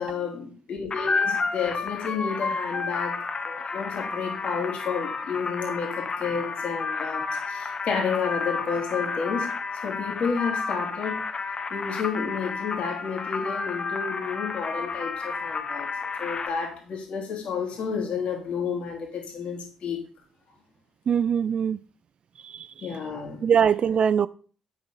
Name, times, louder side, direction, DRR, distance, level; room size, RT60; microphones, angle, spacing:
voice 1, 0.0-3.2 3.4-9.5 9.8-11.3 11.7-15.9 16.2-20.0 22.8-23.4, left 6 dB, 60° left, 2.6 m, -31 dB
sound 1, 0.9-16.5, left 4 dB, 40° left, 0.9 m, -31 dB
voice 2, 21.1-21.8 22.4-23.0 23.4-24.3, right 7 dB, 50° right, 0.4 m, -23 dB
8.1 x 6.9 x 3.9 m
hypercardioid pair, 45°, 2 cm